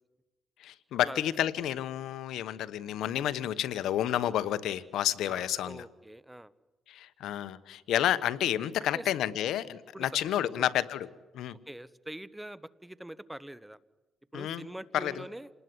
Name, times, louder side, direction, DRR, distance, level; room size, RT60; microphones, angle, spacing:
voice 1, 0.6-5.8 6.9-11.1 11.3-11.6 14.3-14.7 14.9-15.2, left 11 dB, 80° left, 15 dB, 1.1 m, -30 dB
voice 2, 5.3-6.5 8.9-9.1 9.9-10.1 10.4-10.7 11.7-13.8 14.3-15.5, right 1 dB, 5° right, 18 dB, 0.9 m, -44 dB
28.0 x 19.5 x 9.6 m, 1.2 s
cardioid pair, 90°, 0 cm